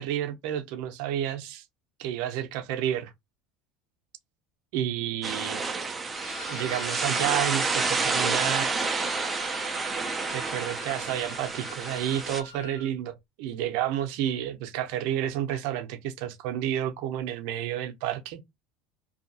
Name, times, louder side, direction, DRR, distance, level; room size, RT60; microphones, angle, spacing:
voice 1, 0.0-1.6 2.0-3.1 4.7-5.6 6.5-8.7 10.3-18.4, right 11 dB, 65° right, 0.6 m, -30 dB
sound 1, 5.2-12.4, right 4 dB, 15° right, 0.4 m, -29 dB
Wind instrument woodwind instrument, 6.1-12.9, left 2 dB, 65° left, 0.6 m, -43 dB
2.6 x 2.4 x 2.7 m
cardioid pair, 155°, 0 cm